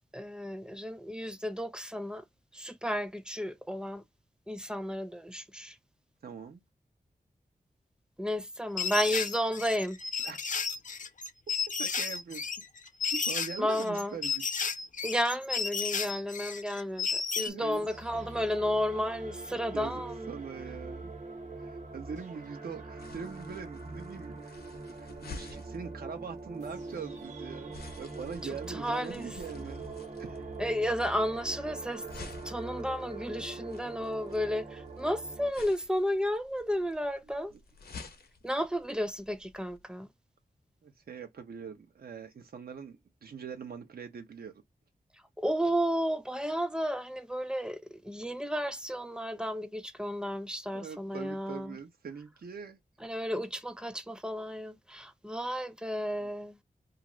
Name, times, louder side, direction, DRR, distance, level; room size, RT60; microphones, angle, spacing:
voice 1, 0.1-2.2 2.5-4.0 4.5-5.8 8.2-10.0 13.6-14.2 15.0-20.3 28.4-29.7 30.6-37.5 38.4-40.1 45.1-51.8 53.0-56.6, equal, 5° right, 0.5 m, -33 dB
voice 2, 6.2-6.6 10.2-10.4 11.8-12.4 13.1-14.4 17.5-17.9 19.7-20.0 20.3-21.1 21.6-24.6 25.0-29.9 30.2-30.4 37.5-37.6 40.8-44.5 50.7-52.8 56.2-56.3, right 6 dB, 80° right, 0.7 m, -42 dB
sound 1, 8.8-17.5, left 5 dB, 55° left, 0.5 m, -33 dB
sound 2, 17.7-35.5, right 3 dB, 50° right, 1.0 m, -43 dB
sound 3, 23.0-39.8, left 4 dB, 85° left, 0.7 m, -52 dB
2.4 x 2.4 x 3.0 m
cardioid pair, 60°, 16 cm